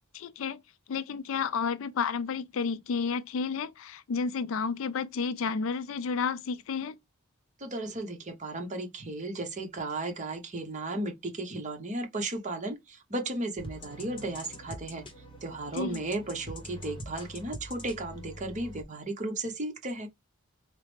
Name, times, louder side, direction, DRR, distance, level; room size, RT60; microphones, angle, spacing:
voice 1, 0.1-0.6 0.9-7.0 15.7-16.0, left 5 dB, 65° left, 0.4 m, -31 dB
voice 2, 7.6-15.0 15.4-20.1, right 2 dB, 35° right, 0.9 m, -35 dB
sound 1, 13.6-18.8, equal, 25° left, 0.8 m, -44 dB
4.7 x 2.0 x 3.3 m
head